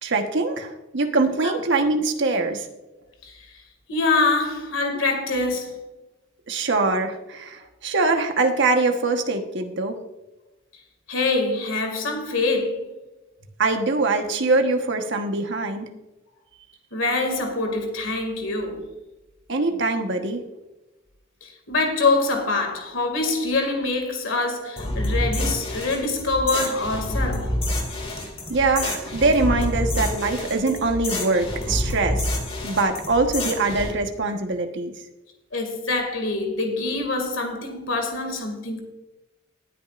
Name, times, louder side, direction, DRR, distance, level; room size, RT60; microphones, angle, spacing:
voice 1, 0.0-2.7 6.5-9.9 13.6-15.8 19.5-20.4 28.5-32.2 32.6-34.9, right 3 dB, 60° right, 1.2 m, -23 dB
voice 2, 3.9-5.8 11.1-12.9 16.9-18.8 21.4-27.6 35.5-38.8, left 3 dB, 70° left, 2.2 m, -25 dB
sound 1, 24.8-33.9, left 1 dB, 30° left, 2.2 m, -28 dB
19.0 x 9.0 x 2.5 m
head